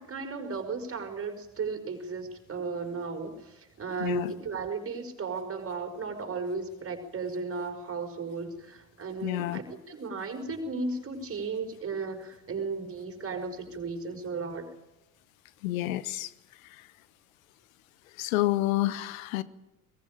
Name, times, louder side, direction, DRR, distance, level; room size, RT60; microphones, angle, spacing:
voice 1, 0.0-14.7, right 4 dB, 30° right, 4 dB, 5.4 m, -35 dB
voice 2, 4.0-4.3 9.2-9.6 15.6-16.3 16.7-16.8 18.2-19.4, left 16 dB, 70° left, 17 dB, 1.2 m, -29 dB
23.0 x 20.0 x 9.0 m, 0.95 s
figure-of-eight pair, 60°, 43 cm